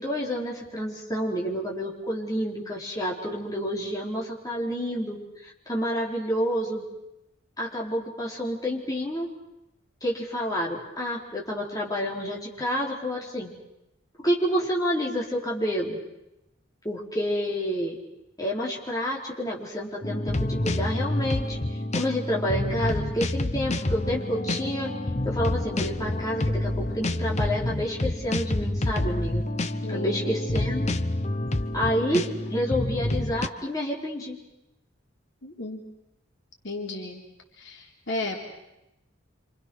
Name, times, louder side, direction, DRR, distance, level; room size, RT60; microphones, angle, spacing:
voice 1, 0.0-6.8 7.6-9.3 10.0-13.5 14.2-16.0 16.8-17.9 18.4-21.6 21.9-24.9 25.2-29.4 29.9-31.0 31.7-34.4, equal, 20° left, -3 dB, 4.5 m, -29 dB
sound 1, 20.0-33.5, left 1 dB, 35° left, 0.9 m, -28 dB
voice 2, 29.8-30.3 35.4-35.8 36.6-37.2 37.6-38.4, left 2 dB, 65° left, 0 dB, 3.7 m, -33 dB
28.0 x 26.5 x 6.4 m, 0.90 s
head